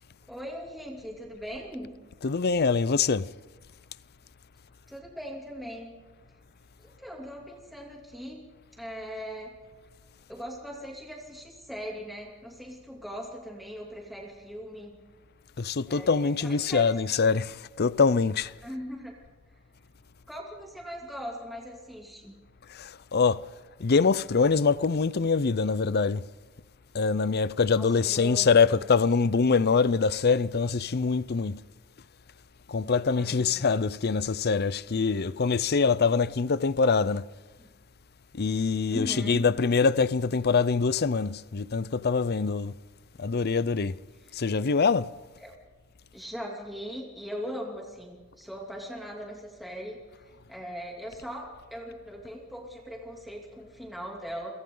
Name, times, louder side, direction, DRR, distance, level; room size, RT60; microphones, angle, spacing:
voice 1, 0.3-1.9 4.9-5.9 6.8-8.5 8.8-9.5 10.3-15.0 15.9-16.9 18.6-19.1 20.3-22.3 27.7-28.8 33.1-33.6 37.6-37.7 38.9-39.5 44.3-44.4 45.4-45.6 46.1-54.5, equal, ahead, 2.8 m, -40 dB
voice 2, 2.2-3.3 15.6-18.5 22.7-23.4 23.8-26.2 26.9-31.6 32.7-37.2 38.3-42.7 43.2-43.9 44.3-45.1, left 5 dB, 50° left, 0.6 m, -24 dB
29.5 x 24.0 x 3.9 m
head